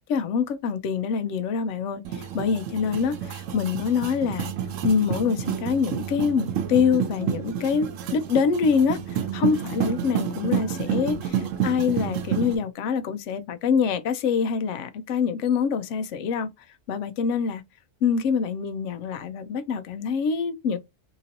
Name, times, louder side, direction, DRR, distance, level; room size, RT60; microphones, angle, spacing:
voice 1, 0.1-4.5 4.8-16.5 16.9-17.6 18.0-20.8, left 6 dB, 75° left, 0.9 m, -25 dB
sound 1, 2.0-12.5, right 9 dB, 90° right, 1.0 m, -29 dB
2.9 x 2.6 x 2.6 m
omnidirectional pair, 1.3 m